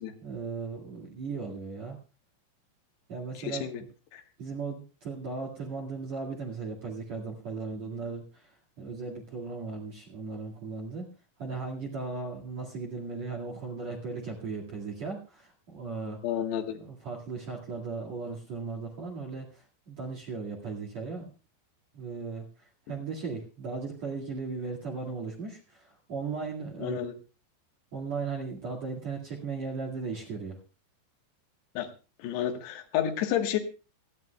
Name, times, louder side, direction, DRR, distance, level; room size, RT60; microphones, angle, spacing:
voice 1, 0.2-2.0 3.1-3.9 4.4-11.1 11.4-16.2 16.7-21.3 21.9-27.0 27.9-30.6, right 4 dB, 45° right, 0 dB, 2.8 m, -37 dB
voice 2, 3.4-3.8 4.1-4.2 16.2-16.8 26.8-27.1 31.8-31.9 32.2-33.6, left 10 dB, 75° left, 5 dB, 3.4 m, -30 dB
28.0 x 11.0 x 2.3 m, 0.32 s
omnidirectional pair, 5.0 m